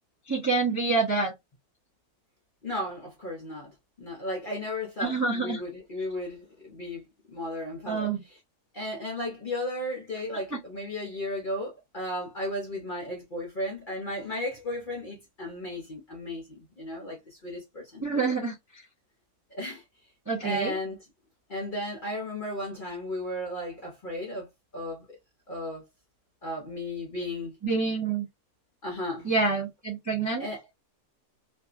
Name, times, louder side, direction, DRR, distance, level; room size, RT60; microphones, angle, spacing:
voice 1, 0.3-1.3 5.0-5.6 7.9-8.2 10.5-10.6 18.0-18.6 20.3-20.8 27.6-28.3 29.2-30.5, right 4 dB, 25° right, 0.3 m, -27 dB
voice 2, 2.6-8.4 8.7-18.3 19.5-19.8 20.4-21.1 21.5-24.5 24.7-25.2 25.5-25.8 26.4-27.6 28.8-29.3 30.4-30.6, left 1 dB, 50° left, 0.6 m, -35 dB
2.6 x 2.4 x 2.4 m
omnidirectional pair, 1.6 m